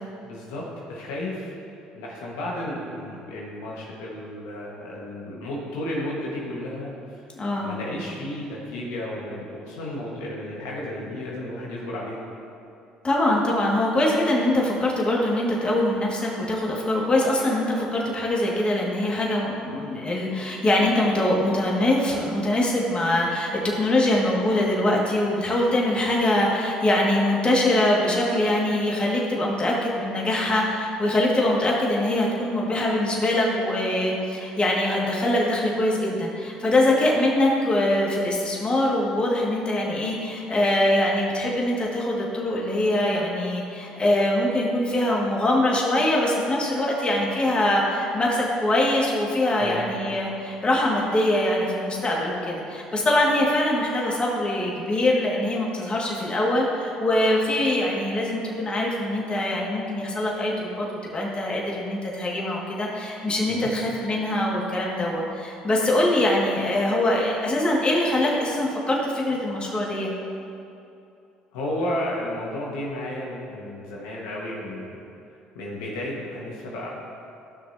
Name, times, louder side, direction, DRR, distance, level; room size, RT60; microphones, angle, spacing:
voice 1, 0.3-1.5 1.9-7.2 7.6-12.2 49.6-49.9 63.4-63.7 71.5-75.0 75.5-76.9, left 1 dB, 80° left, -4 dB, 1.5 m, -33 dB
voice 2, 7.4-7.8 13.0-60.9 61.1-70.1, left 1 dB, 30° left, -3 dB, 2.0 m, -23 dB
14.0 x 6.1 x 2.8 m, 2.6 s
hypercardioid pair, 65°, 4 cm